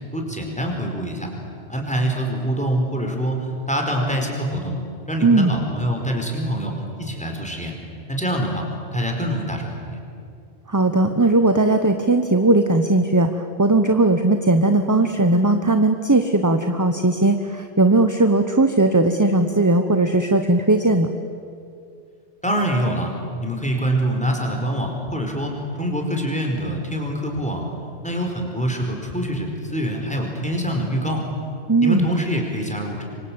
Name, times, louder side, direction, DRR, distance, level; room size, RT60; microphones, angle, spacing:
voice 1, 0.1-1.3 1.7-4.8 5.1-7.7 8.1-8.6 8.9-9.8 22.4-23.1 23.4-27.7 28.0-31.2 31.8-33.0, equal, 5° left, 1 dB, 4.8 m, -25 dB
voice 2, 10.7-21.1 31.7-32.1, right 2 dB, 15° right, 7 dB, 1.0 m, -18 dB
27.0 x 24.0 x 8.8 m, 2.4 s
omnidirectional pair, 1.2 m